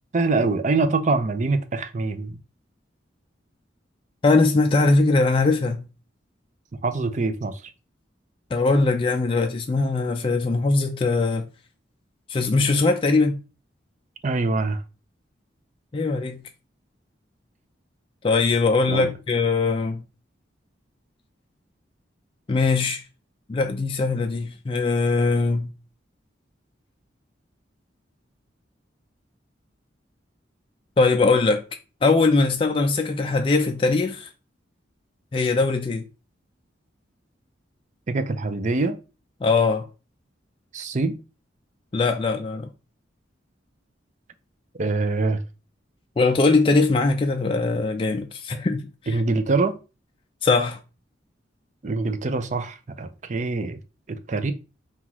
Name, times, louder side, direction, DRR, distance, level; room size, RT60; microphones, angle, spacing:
voice 1, 0.1-2.4 6.8-7.6 14.2-14.8 18.9-19.1 38.1-39.0 40.7-41.2 44.8-45.4 49.1-49.8 51.8-53.8 54.1-54.5, right 3 dB, 40° right, 0.5 m, -24 dB
voice 2, 4.2-5.8 8.5-11.5 12.3-13.4 15.9-16.4 18.2-20.0 22.5-23.0 23.5-25.7 31.0-31.6 32.0-34.3 35.3-36.0 39.4-39.9 41.9-42.7 46.2-49.2 50.4-50.8, left 3 dB, 30° left, 0.3 m, -21 dB
5.5 x 2.4 x 3.0 m
head